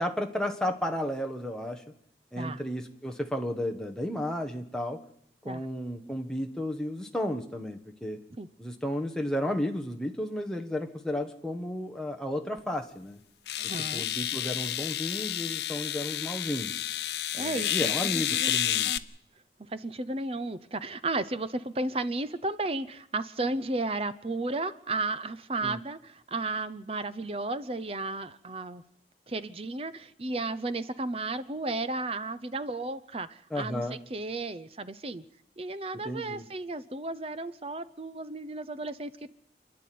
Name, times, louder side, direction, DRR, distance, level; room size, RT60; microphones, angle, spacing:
voice 1, 0.0-1.8 2.3-5.0 5.4-8.2 8.6-13.2 13.6-16.7 17.3-18.9 25.6-25.8 33.5-34.0 36.0-36.4, left 1 dB, 5° left, 3 dB, 1.4 m, -33 dB
sound 1, 12.6-12.7 13.5-19.0, left 11 dB, 75° left, 0.8 m, -30 dB
voice 2, 13.6-14.0 17.4-18.6 18.9-19.0 19.7-28.8 29.3-35.2 35.6-39.3, right 2 dB, 35° right, 14 dB, 0.7 m, -34 dB
28.5 x 10.5 x 9.3 m, 0.75 s
head